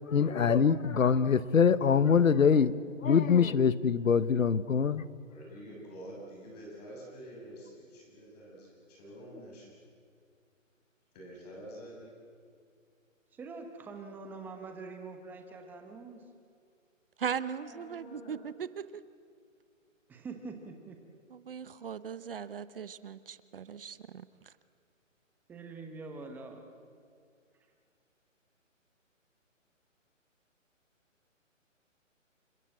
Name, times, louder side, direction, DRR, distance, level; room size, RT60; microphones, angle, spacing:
voice 1, 0.1-5.0, left 6 dB, 80° left, 1.3 m, -24 dB
voice 2, 5.3-9.7 11.1-12.1 17.6-18.3, equal, 30° left, 7.1 m, -48 dB
voice 3, 13.3-16.2 20.1-21.0 25.5-26.6, right 4 dB, 5° right, 1.1 m, -44 dB
voice 4, 17.2-18.9 21.3-24.5, right 7 dB, 45° right, 0.9 m, -39 dB
29.0 x 25.0 x 7.8 m
hypercardioid pair, 155°, 39 cm